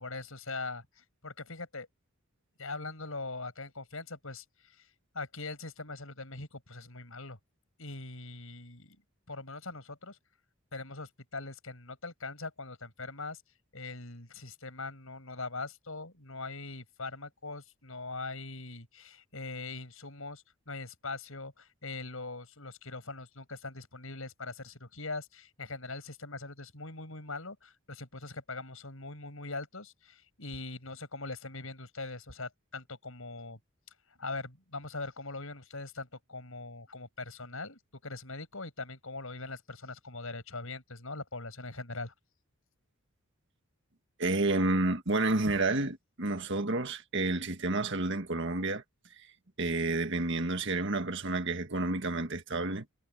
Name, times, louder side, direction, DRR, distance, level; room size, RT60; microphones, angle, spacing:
voice 1, 0.0-1.9 2.6-4.9 5.1-7.4 7.8-9.0 9.3-10.2 10.7-13.4 13.7-33.6 34.2-42.1, left 3 dB, 70° left, 6.2 m, -41 dB
voice 2, 44.2-48.8 49.6-52.9, right 2 dB, 55° right, 1.8 m, -30 dB
head